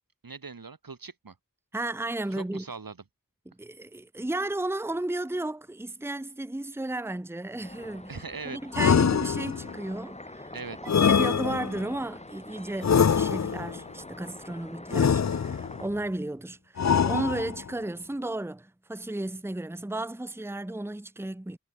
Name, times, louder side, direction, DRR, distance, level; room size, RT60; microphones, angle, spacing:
voice 1, 0.2-1.4 2.3-3.0 8.1-8.6 10.5-11.1, right 4 dB, 85° right, 2.3 m, -41 dB
voice 2, 1.7-2.6 3.5-8.2 8.4-10.5 10.8-21.6, right 1 dB, 5° right, 0.9 m, -34 dB
sound 1, 7.6-15.9, left 2 dB, 20° left, 1.3 m, -45 dB
sound 2, 8.7-9.8 10.9-11.9 12.8-13.8 14.9-15.8 16.8-17.7, left 7 dB, 55° left, 0.6 m, -24 dB
wide cardioid pair, 50°, 34 cm